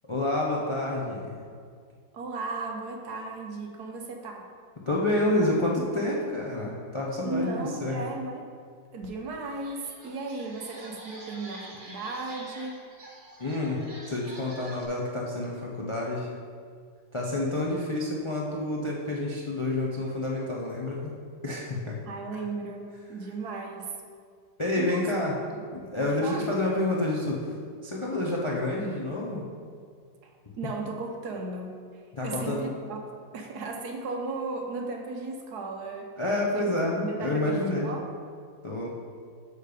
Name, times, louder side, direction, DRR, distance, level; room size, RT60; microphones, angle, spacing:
voice 1, 0.1-1.4 4.9-8.0 13.4-13.8 14.1-16.3 17.1-21.1 21.4-22.0 24.6-25.3 25.7-27.5 27.8-29.4 32.1-32.7 36.2-37.9 38.6-38.9, left 1 dB, 40° left, -3 dB, 0.4 m, -28 dB
voice 2, 2.1-4.5 7.2-8.5 8.9-12.8 22.0-23.9 24.8-25.1 25.5-25.6 26.0-26.5 30.2-33.0 33.3-36.1 36.5-38.1, right 3 dB, 65° right, 2 dB, 1.3 m, -36 dB
sound 1, 9.0-9.1 9.5-14.8, right 1 dB, 35° right, 1.0 m, -47 dB
6.7 x 6.4 x 5.1 m, 2.1 s
omnidirectional pair, 2.0 m